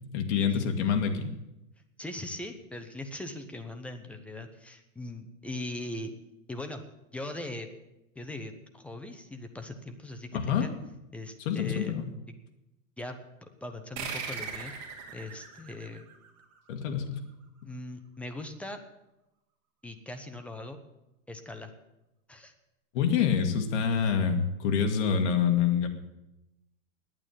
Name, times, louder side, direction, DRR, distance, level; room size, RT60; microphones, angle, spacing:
voice 1, 0.1-1.3 10.3-10.7 11.5-12.1 16.7-17.2 22.9-25.9, left 7 dB, 55° left, 5 dB, 1.9 m, -26 dB
voice 2, 2.0-6.1 6.5-6.8 7.1-7.7 8.1-10.7 11.1-12.0 13.0-14.7 15.1-16.1 17.6-18.8 19.8-20.8 21.3-21.7 22.3-22.5 23.2-23.3, left 1 dB, 5° left, 6 dB, 0.6 m, -40 dB
sound 1, 14.0-17.0, right 5 dB, 45° right, 3.2 m, -39 dB
9.9 x 8.9 x 9.1 m, 0.93 s
supercardioid pair, 150°, 42 cm